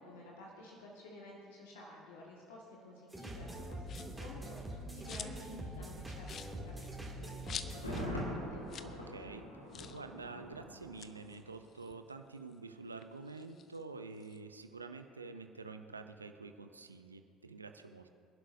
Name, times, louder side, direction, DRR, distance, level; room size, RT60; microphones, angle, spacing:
voice 1, 0.0-8.6, left 1 dB, 70° left, -3 dB, 1.8 m, -52 dB
sound 1, 3.1-8.1, right 1 dB, 10° right, 2.6 m, -44 dB
sound 2, 3.8-4.3 4.7-5.5 5.8-5.9 6.2-8.1 8.4-8.5 8.7-9.0 9.2-9.3 9.7-10.0 10.8-12.5 12.9-14.4, left 8 dB, 45° left, 0.6 m, -48 dB
Thunder, 7.7-11.6 11.9-12.0, equal, 85° left, 2.2 m, -43 dB
voice 2, 8.8-9.4 9.9-18.1, right 4 dB, 85° right, 7 dB, 0.6 m, -48 dB
26.0 x 11.5 x 2.7 m, 2.6 s
figure-of-eight pair, 60°, 0 cm